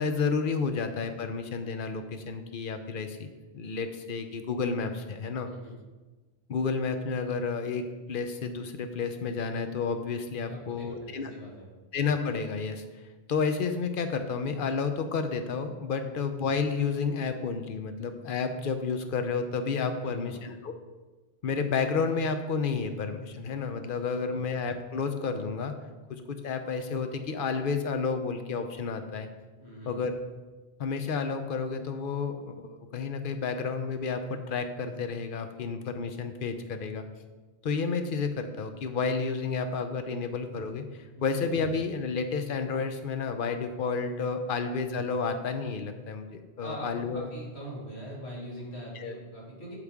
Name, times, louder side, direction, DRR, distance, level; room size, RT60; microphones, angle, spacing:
voice 1, 0.0-5.5 6.5-11.3 11.9-12.9 13.3-20.7 21.4-25.7 26.1-29.3 29.9-30.2 30.8-37.1 37.6-47.3 48.9-49.1, left 5 dB, 60° left, 7 dB, 0.9 m, -31 dB
voice 2, 10.4-11.7 16.0-16.2 19.9-20.4 24.1-24.4 29.6-30.0 41.2-41.3 44.5-44.6 46.6-49.8, right 1 dB, 90° left, -4 dB, 2.6 m, -43 dB
8.4 x 8.3 x 3.6 m, 1.2 s
omnidirectional pair, 1.1 m